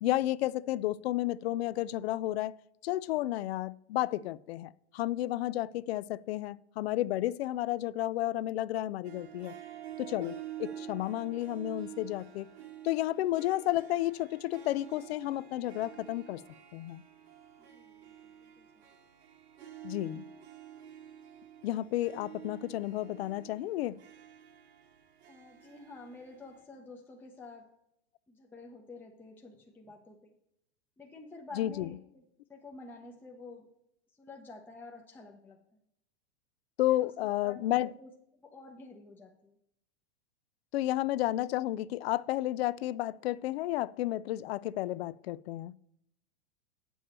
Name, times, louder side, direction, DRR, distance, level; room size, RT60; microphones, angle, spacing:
voice 1, 0.0-2.5 2.8-9.6 10.0-12.5 12.8-16.4 16.7-17.0 19.8-20.2 21.6-24.0 31.5-32.0 36.8-37.9 40.7-45.7, left 15 dB, 65° left, 0.4 m, -32 dB
Harp, 9.0-26.6, right 10 dB, 75° right, 1.5 m, -49 dB
voice 2, 17.6-18.1 18.4-18.7 25.3-27.7 28.3-30.3 31.0-32.2 32.5-33.7 34.2-35.6 36.9-37.1 37.4-38.1 38.4-39.5, left 3 dB, 5° left, 0.7 m, -49 dB
8.5 x 7.1 x 4.2 m
hypercardioid pair, 135°, 33 cm